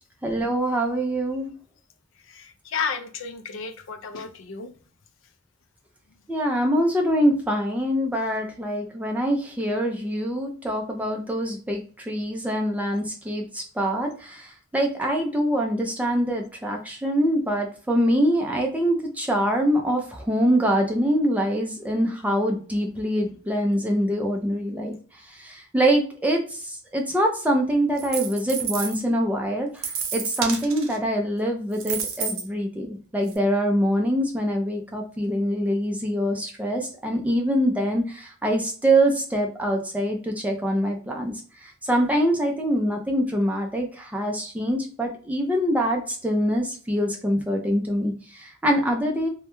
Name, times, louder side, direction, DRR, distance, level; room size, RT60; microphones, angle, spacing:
voice 1, 0.2-1.5 6.3-25.0 25.3-41.3 41.6-49.3, equal, 5° right, 1 dB, 0.3 m, -24 dB
voice 2, 2.2-4.8, left 5 dB, 70° left, 7 dB, 0.4 m, -32 dB
sound 1, 28.0-29.0 29.8-31.0 31.7-32.5 33.3-33.4, right 6 dB, 85° right, 0.5 m, -30 dB
2.2 x 2.1 x 2.9 m, 0.41 s
head